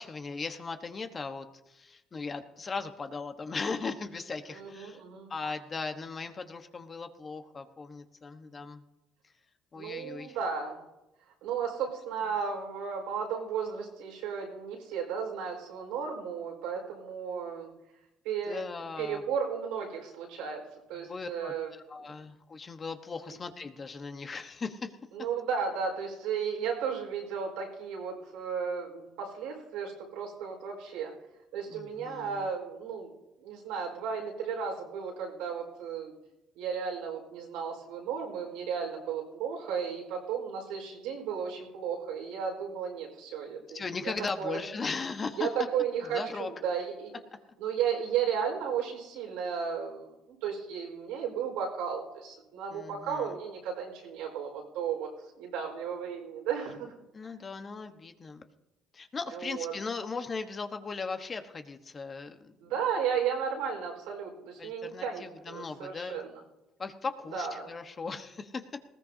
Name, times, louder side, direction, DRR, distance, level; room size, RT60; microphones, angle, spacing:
voice 1, 0.0-5.0 5.3-8.8 9.7-10.4 18.5-19.2 21.1-24.9 31.7-32.5 43.7-45.5 46.0-46.5 52.7-53.4 57.1-58.5 58.9-62.6 64.6-66.2 66.8-68.6, left 4 dB, 35° left, 7 dB, 1.2 m, -38 dB
voice 2, 4.6-5.3 9.7-10.8 11.4-17.7 18.2-18.6 19.0-20.6 20.9-21.7 22.1-22.2 25.1-31.1 31.5-33.1 33.4-36.1 36.6-44.1 44.4-44.6 45.3-47.2 47.6-55.1 55.4-56.9 59.3-59.7 62.6-66.3 67.3-67.7, right 7 dB, 90° right, 0 dB, 4.5 m, -34 dB
19.5 x 16.0 x 2.8 m, 0.95 s
supercardioid pair, 85°, 0 cm